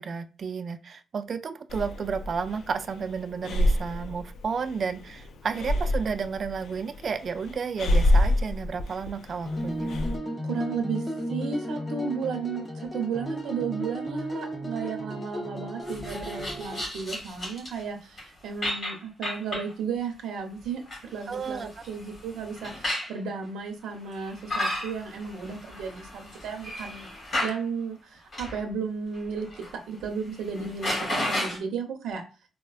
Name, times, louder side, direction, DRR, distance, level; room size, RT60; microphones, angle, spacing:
voice 1, 0.0-9.9 21.3-21.7, right 5 dB, 45° right, 10 dB, 0.3 m, -32 dB
Breathing, 1.7-10.2, left 1 dB, 65° left, 0.4 m, -28 dB
sound 1, 9.5-16.8, equal, 15° left, 0.6 m, -34 dB
voice 2, 10.4-27.1 27.4-32.2, right 5 dB, 80° right, 3 dB, 0.6 m, -34 dB
sound 2, 15.9-17.8 18.2-18.3 18.6-19.7 20.6-23.1 24.1-27.6 28.3-28.6 29.1-29.7 30.0-30.1 30.4-31.6, left 1 dB, 35° left, 1.7 m, -33 dB
4.1 x 2.2 x 2.3 m, 0.33 s
cardioid pair, 135°, 0 cm